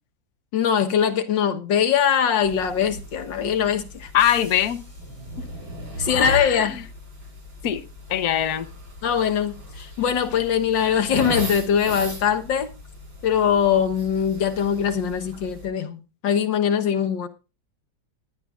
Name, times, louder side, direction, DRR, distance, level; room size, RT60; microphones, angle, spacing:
voice 1, 0.5-4.1 6.0-6.8 9.0-12.7 13.2-17.3, left 8 dB, 75° left, 1.9 m, -22 dB
sound 1, 2.4-15.7, right 1 dB, 85° right, 5.6 m, -37 dB
voice 2, 4.1-4.8 6.1-6.8 7.6-7.8 8.1-8.7, left 10 dB, 60° left, 1.4 m, -22 dB
sound 2, 4.2-5.8, equal, 5° right, 7.3 m, -48 dB
19.5 x 11.0 x 2.5 m
omnidirectional pair, 2.0 m